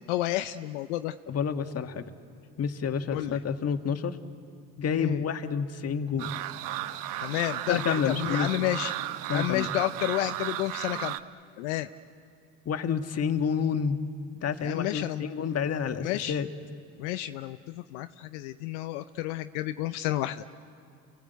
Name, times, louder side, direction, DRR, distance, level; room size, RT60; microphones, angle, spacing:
voice 1, 0.1-1.1 3.1-3.4 4.9-5.2 7.2-8.9 9.3-11.1 11.6-11.9 14.6-15.3 16.0-16.4 17.0-20.4, left 15 dB, 80° left, 11 dB, 0.7 m, -31 dB
voice 2, 1.3-2.1 2.6-4.2 4.8-6.4 7.7-8.5 9.3-9.7 12.7-14.0 14.4-16.5, left 6 dB, 45° left, 8 dB, 1.8 m, -29 dB
sound 1, 6.2-11.2, right 14 dB, 70° right, 0.9 m, -34 dB
29.5 x 19.0 x 8.1 m, 2.6 s
hypercardioid pair, 65°, 35 cm